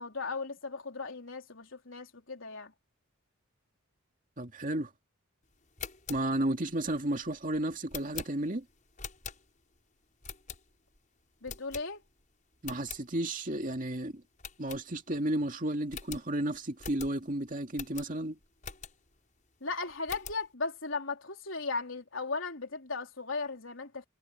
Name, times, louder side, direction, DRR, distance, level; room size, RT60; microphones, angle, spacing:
voice 1, 0.0-2.7 11.4-12.0 19.6-24.1, left 4 dB, 65° left, 4.0 m, -37 dB
voice 2, 4.4-4.9 6.1-8.7 12.6-14.2 14.6-18.4, right 1 dB, 40° right, 2.4 m, -33 dB
sound 1, 5.6-9.8 10.2-11.0 11.4-12.2 12.5-13.0 13.5-13.6 13.8-14.0 14.4-15.3 15.5-15.6 15.9-19.2 19.6-20.5, left 7 dB, 35° left, 7.7 m, -45 dB
head